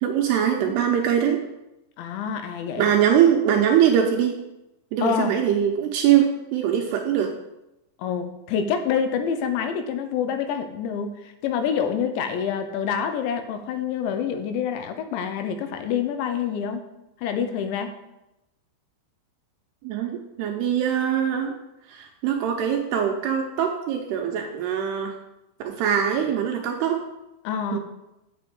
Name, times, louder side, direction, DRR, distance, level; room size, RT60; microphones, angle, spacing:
voice 1, 0.0-1.4 2.8-4.4 4.9-7.3 19.8-21.6 21.9-25.2 25.6-27.0 27.7-27.8, right 9 dB, 80° right, 3 dB, 2.5 m, -22 dB
voice 2, 2.0-2.9 5.0-5.4 8.0-11.1 11.4-16.8 17.2-17.9 27.4-27.8, left 7 dB, 80° left, 7 dB, 3.0 m, -27 dB
7.8 x 5.9 x 7.8 m, 0.93 s
omnidirectional pair, 5.4 m